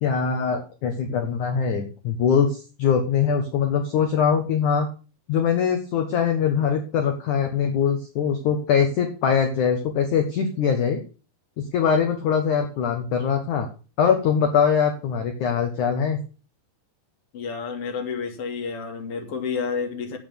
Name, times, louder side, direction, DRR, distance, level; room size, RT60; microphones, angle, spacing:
voice 1, 0.0-4.9 5.3-11.0 11.6-13.7 14.0-16.2, left 7 dB, 60° left, 5 dB, 2.4 m, -22 dB
voice 2, 17.3-20.2, left 5 dB, 40° left, 4 dB, 2.6 m, -30 dB
9.3 x 8.6 x 6.9 m, 0.35 s
omnidirectional pair, 4.7 m